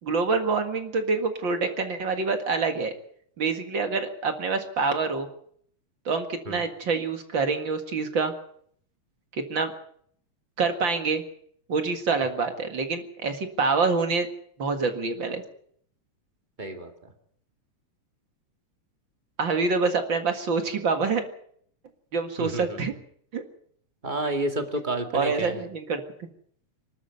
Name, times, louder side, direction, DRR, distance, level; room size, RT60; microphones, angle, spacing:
voice 1, 0.0-2.9 3.4-5.3 6.1-8.3 9.3-9.7 10.6-11.2 11.7-14.3 14.6-15.4 19.4-21.2 22.1-22.9 23.3-23.4 25.1-26.3, right 4 dB, 45° right, 6 dB, 2.3 m, -26 dB
voice 2, 16.6-16.9 22.4-22.8 24.0-25.6, right 1 dB, 20° right, 5 dB, 1.8 m, -30 dB
25.0 x 12.5 x 8.3 m, 0.63 s
omnidirectional pair, 3.4 m